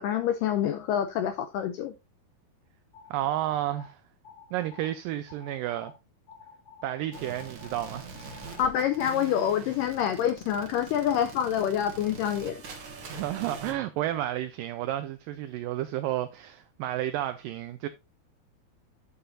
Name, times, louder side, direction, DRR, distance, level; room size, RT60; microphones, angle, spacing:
voice 1, 0.0-1.9 8.6-12.6, left 9 dB, 85° left, 1.9 m, -27 dB
sound 1, 2.9-3.9 4.2-4.9 5.3-5.9 6.3-9.0, left 6 dB, 40° left, 2.9 m, -50 dB
voice 2, 3.1-4.0 4.5-5.9 6.8-8.1 13.1-17.9, right 13 dB, 85° right, 2.0 m, -31 dB
sound 2, 7.1-13.7, right 4 dB, 50° right, 1.6 m, -43 dB
9.9 x 7.7 x 2.5 m
omnidirectional pair, 4.5 m